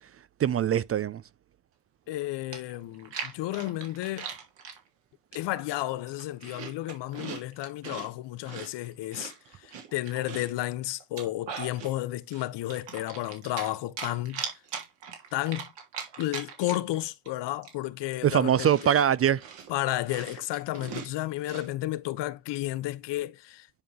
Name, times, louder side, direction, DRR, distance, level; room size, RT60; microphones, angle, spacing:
voice 1, 0.4-1.2 18.2-19.4, right 9 dB, 30° right, 0.4 m, -23 dB
voice 2, 2.1-4.3 5.3-14.4 15.3-15.7 16.2-18.9 19.7-23.7, left 16 dB, 65° left, 0.8 m, -32 dB
Chewing mastication, 2.1-2.2 2.5-4.8 5.3-5.7 6.0-8.1 8.4-10.6 11.0-11.9 12.3-13.7 14.0-17.0 17.2-17.3 17.6-21.7, right 7 dB, 65° right, 3.2 m, -40 dB
9.9 x 3.8 x 3.5 m
hypercardioid pair, 65°, 46 cm